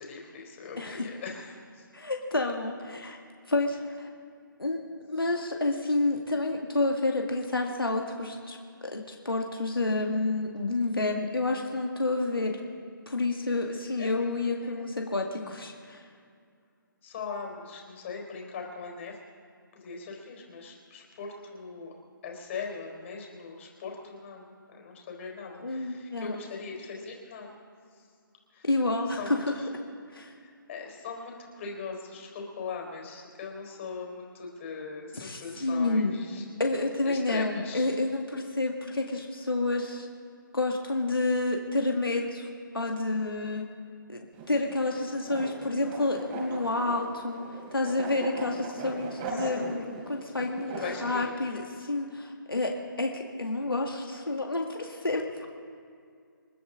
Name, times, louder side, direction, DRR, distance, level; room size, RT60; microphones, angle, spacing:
voice 1, 0.0-1.9 14.0-14.1 14.4-14.9 17.0-19.2 19.7-21.9 22.2-27.6 27.9-28.1 28.5-28.7 29.1-29.7 30.4-36.5 37.1-37.9 49.3-49.7 50.7-51.3, left 5 dB, 35° left, 0 dB, 3.9 m, -40 dB
voice 2, 0.8-1.1 1.9-3.2 3.5-4.1 4.6-12.6 13.1-16.0 25.6-26.4 28.6-29.4 30.1-30.3 35.2-36.2 36.6-40.1 40.5-42.5 42.7-43.6 44.1-44.2 44.5-50.8 51.0-55.5, left 2 dB, 90° left, 1 dB, 1.9 m, -29 dB
sound 1, 44.3-51.2, right 3 dB, 30° right, 3.0 m, -39 dB
28.0 x 11.5 x 3.9 m, 2.3 s
figure-of-eight pair, 145°, 12 cm